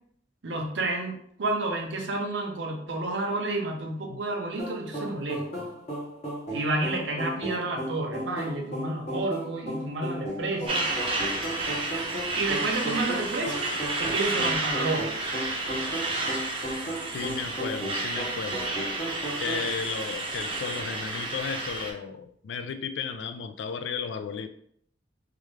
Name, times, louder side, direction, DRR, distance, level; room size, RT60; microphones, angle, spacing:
voice 1, 0.4-5.7 6.5-10.9 12.3-13.7 14.0-15.1, right 2 dB, 75° right, 2 dB, 0.7 m, -30 dB
sound 1, 4.6-19.7, right 1 dB, 35° left, 1.1 m, -35 dB
Truck, 10.7-21.9, right 2 dB, 30° right, 0.6 m, -31 dB
voice 2, 17.1-18.7 19.4-24.5, left 6 dB, 75° left, 8 dB, 0.3 m, -34 dB
3.3 x 2.4 x 3.2 m, 0.68 s
head